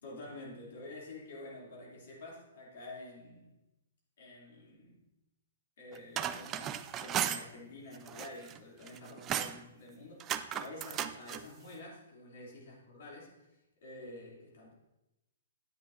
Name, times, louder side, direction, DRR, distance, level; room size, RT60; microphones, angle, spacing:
voice 1, 0.0-3.5 4.2-5.0 5.8-13.5 13.8-14.7, left 2 dB, 60° left, -4 dB, 3.1 m, -49 dB
sound 1, 5.9-7.4 7.9-8.6 8.9-9.6 10.2-11.4, right 10 dB, 25° right, 0.4 m, -35 dB
9.9 x 8.3 x 2.7 m, 0.95 s
figure-of-eight pair, 120°, 0 cm